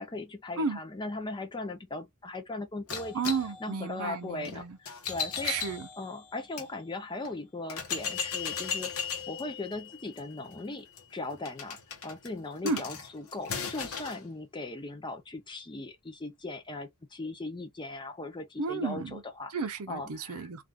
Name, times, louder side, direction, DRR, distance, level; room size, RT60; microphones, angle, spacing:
voice 1, 0.0-3.2 3.6-5.6 6.0-8.9 9.3-20.5, left 2 dB, 20° left, 0.5 m, -39 dB
sound 1, 2.9-6.7 7.2-7.3 7.7-14.2, left 6 dB, 65° left, 0.8 m, -37 dB
voice 2, 3.1-4.8 5.4-5.9 12.6-12.8 18.6-19.2 19.5-20.6, right 4 dB, 75° right, 0.6 m, -32 dB
2.4 x 2.4 x 3.3 m
head